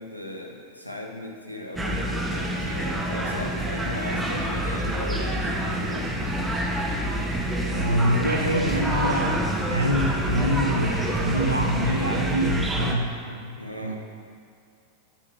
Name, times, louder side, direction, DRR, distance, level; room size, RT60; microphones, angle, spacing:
voice 1, 0.0-6.4 13.6-14.0, left 1 dB, 90° left, 1 dB, 0.9 m, -37 dB
sound 1, 1.8-13.0, equal, 10° right, 0.8 m, -27 dB
sound 2, 3.5-10.4, equal, 50° left, 1.9 m, -46 dB
voice 2, 7.7-14.0, equal, 85° right, 3 dB, 0.7 m, -25 dB
8.4 x 4.0 x 5.6 m, 2.3 s
figure-of-eight pair, 90°, 0 cm